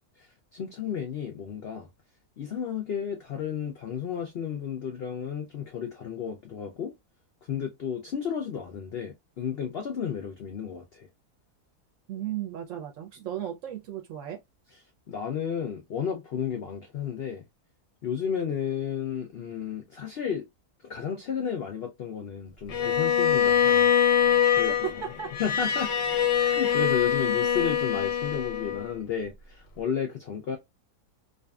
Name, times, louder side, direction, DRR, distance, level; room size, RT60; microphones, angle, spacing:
voice 1, 0.2-1.9 2.4-6.9 7.5-11.1 15.1-17.5 18.0-20.5 20.8-23.9 24.5-24.7 25.4-26.1 26.3-30.6, left 7 dB, 90° left, 0.5 m, -32 dB
voice 2, 12.1-14.4 24.5-24.7 25.0-25.3, right 10 dB, 65° right, 0.8 m, -36 dB
Bowed string instrument, 22.7-28.9, left 9 dB, 60° left, 0.8 m, -24 dB
2.6 x 2.5 x 2.2 m
omnidirectional pair, 1.7 m